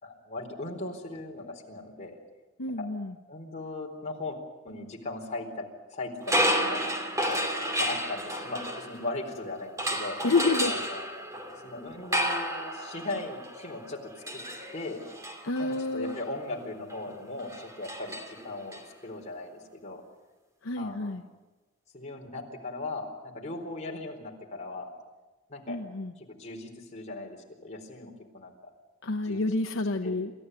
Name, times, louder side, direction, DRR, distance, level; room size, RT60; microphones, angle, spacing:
voice 1, 0.0-2.2 2.8-2.9 3.3-4.4 4.6-5.6 5.9-6.8 7.3-10.2 10.6-11.0 11.6-14.4 14.7-15.0 15.6-20.0 20.8-21.2 21.9-24.9 25.5-25.8 26.2-28.5 29.2-29.4 30.0-30.2, left 2 dB, 35° left, 0 dB, 4.2 m, -38 dB
voice 2, 2.6-3.1 10.2-10.8 15.4-16.2 20.6-21.2 25.7-26.1 29.0-30.3, left 3 dB, 70° left, 6 dB, 0.9 m, -29 dB
sound 1, 6.2-9.3 9.8-18.8, equal, 15° right, 2.7 m, -32 dB
28.5 x 14.0 x 9.6 m, 1.2 s
head